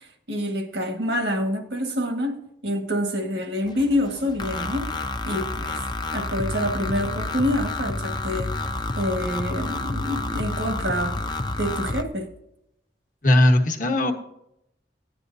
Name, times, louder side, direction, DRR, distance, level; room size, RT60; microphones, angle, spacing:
voice 1, 0.3-4.9 5.2-5.8 6.1-8.6 9.0-11.2 11.6-12.3, left 1 dB, 75° right, 1.7 m, -27 dB
sound 1, 3.7-12.0, left 2 dB, 25° left, 0.6 m, -29 dB
voice 2, 13.2-14.1, left 1 dB, 50° left, 1.2 m, -18 dB
16.0 x 9.9 x 2.7 m
head